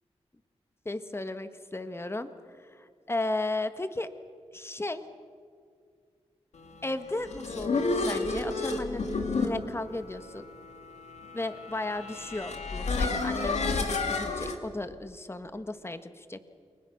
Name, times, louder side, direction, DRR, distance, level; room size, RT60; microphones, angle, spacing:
voice 1, 0.8-2.3 2.6-4.1 4.5-5.0 6.8-10.4 11.3-16.4, left 2 dB, 20° left, 10 dB, 1.4 m, -35 dB
sound 1, 7.0-14.6, left 3 dB, 80° left, 2.4 m, -31 dB
29.5 x 22.0 x 6.5 m, 2.1 s
cardioid pair, 65°, 11 cm